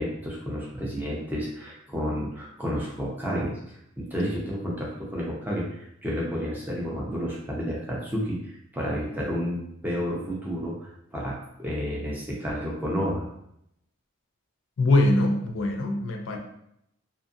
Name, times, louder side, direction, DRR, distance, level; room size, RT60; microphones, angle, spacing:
voice 1, 0.0-13.3, equal, 10° right, -5 dB, 0.6 m, -31 dB
voice 2, 14.8-16.4, left 2 dB, 65° left, 3 dB, 0.4 m, -22 dB
2.6 x 2.5 x 2.5 m, 0.76 s
head